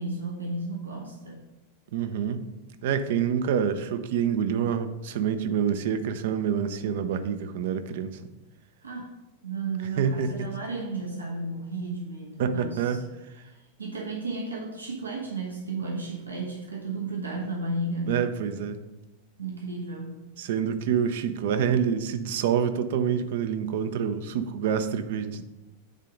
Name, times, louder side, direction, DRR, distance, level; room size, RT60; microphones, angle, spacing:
voice 1, 0.0-1.4 8.8-9.1 9.4-13.0 13.4-18.3 19.4-20.3, right 2 dB, 75° right, -1 dB, 1.0 m, -33 dB
voice 2, 1.9-2.4 2.8-8.1 10.0-10.5 12.4-13.0 18.1-18.8 20.4-25.4, right 7 dB, 55° right, 10 dB, 0.6 m, -27 dB
9.1 x 3.7 x 5.2 m, 1.0 s
figure-of-eight pair, 90°, 0 cm